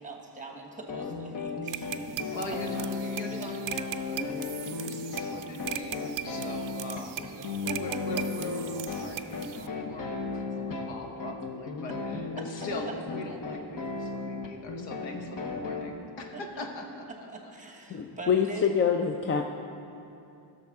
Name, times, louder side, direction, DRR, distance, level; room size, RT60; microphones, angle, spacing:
voice 1, 0.0-1.9 3.2-3.6 7.5-8.5 12.6-12.9 13.3-13.4 16.3-16.9 17.3-18.7, right 3 dB, 15° right, 1 dB, 1.1 m, -42 dB
sound 1, 0.9-15.8, left 3 dB, 45° left, 1.0 m, -35 dB
sound 2, 1.7-9.7, right 12 dB, 50° right, 0.4 m, -39 dB
voice 2, 2.3-2.7 2.9-7.2 7.8-16.8 17.2-17.3, left 2 dB, 75° left, 2 dB, 1.3 m, -41 dB
voice 3, 17.9-19.4, left 7 dB, 30° left, 4 dB, 0.4 m, -25 dB
16.0 x 6.8 x 3.6 m, 2.7 s
cardioid pair, 140°, 45 cm